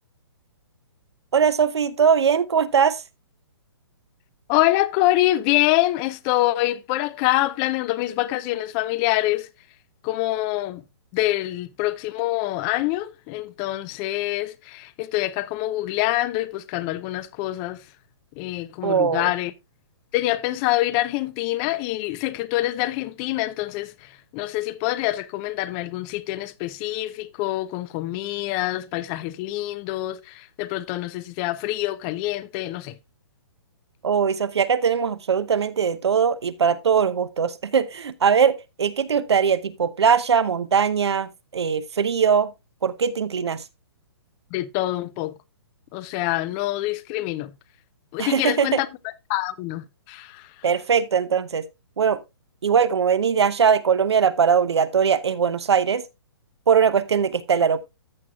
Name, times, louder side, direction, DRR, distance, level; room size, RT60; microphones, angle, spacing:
voice 1, 1.3-3.0 18.8-19.3 34.0-42.5 42.8-43.6 48.2-48.8 50.6-51.6 52.0-52.2 52.6-56.0 56.7-57.8, right 7 dB, 85° right, 0.8 m, -21 dB
voice 2, 4.5-9.5 10.0-10.8 11.1-17.8 18.4-19.5 20.1-23.9 24.3-32.9 44.5-45.3 45.9-47.5 48.1-48.9 49.3-50.4, left 16 dB, 25° left, 0.5 m, -25 dB
14.0 x 6.2 x 2.3 m
hypercardioid pair, 145°, 14 cm